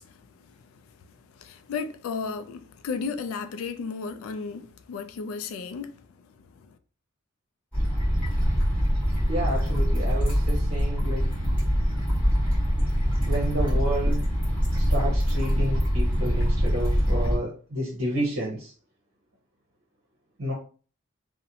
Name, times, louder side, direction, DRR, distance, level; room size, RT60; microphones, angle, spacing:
voice 1, 0.0-6.8, left 5 dB, 85° left, 0.3 m, -35 dB
sound 1, 7.7-17.4, equal, 5° left, 1.1 m, -24 dB
voice 2, 9.3-11.3 13.3-14.2 14.9-18.7 20.4-20.5, right 1 dB, 70° right, 0.7 m, -30 dB
2.5 x 2.0 x 2.7 m
head